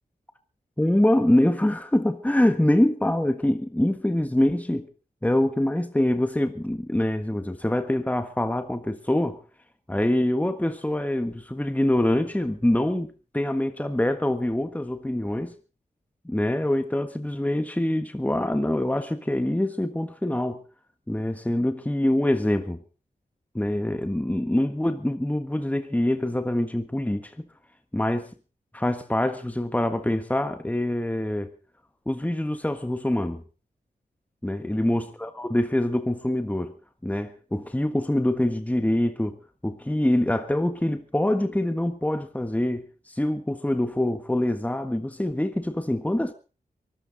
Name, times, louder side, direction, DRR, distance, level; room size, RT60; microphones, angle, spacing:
voice 1, 0.8-4.9 5.2-9.4 9.9-13.1 13.3-15.5 16.2-20.6 21.1-22.8 23.5-27.5 27.9-28.3 28.7-31.5 32.1-33.4 34.4-36.7 37.0-46.3, left 1 dB, 10° left, 1.5 m, -25 dB
23.5 x 14.0 x 4.0 m
cardioid pair, 60°, 17 cm